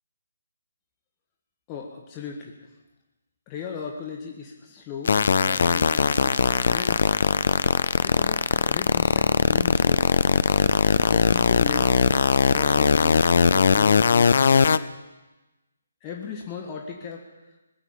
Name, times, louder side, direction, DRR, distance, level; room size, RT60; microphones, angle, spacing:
voice 1, 1.7-2.7 3.5-5.1 5.4-6.4 6.7-7.2 8.0-10.2 11.1-12.0 12.5-14.9 16.0-17.5, left 6 dB, 20° left, 0 dB, 1.6 m, -37 dB
sound 1, 5.0-14.8, left 5 dB, 50° left, 0.6 m, -20 dB
20.0 x 8.0 x 9.0 m, 1.1 s
figure-of-eight pair, 140°, 0 cm